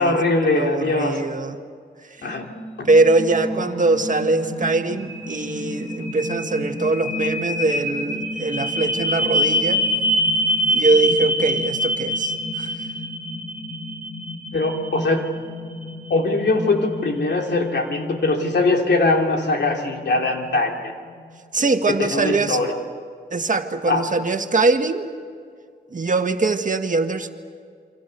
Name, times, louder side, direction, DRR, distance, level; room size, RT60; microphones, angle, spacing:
voice 1, 0.0-1.2 2.2-2.5 2.8-2.9 14.5-15.2 16.1-20.9 21.9-22.7 23.9-24.0, left 2 dB, 85° left, 2 dB, 3.1 m, -21 dB
voice 2, 0.5-1.6 2.2-2.3 2.8-9.8 10.7-12.7 21.5-22.6 23.3-25.1 25.9-27.3, right 3 dB, 50° right, 6 dB, 1.7 m, -22 dB
sound 1, 2.5-20.6, equal, 35° left, 7.5 m, -26 dB
28.5 x 25.0 x 6.8 m, 2.1 s
wide cardioid pair, 85°, 17 cm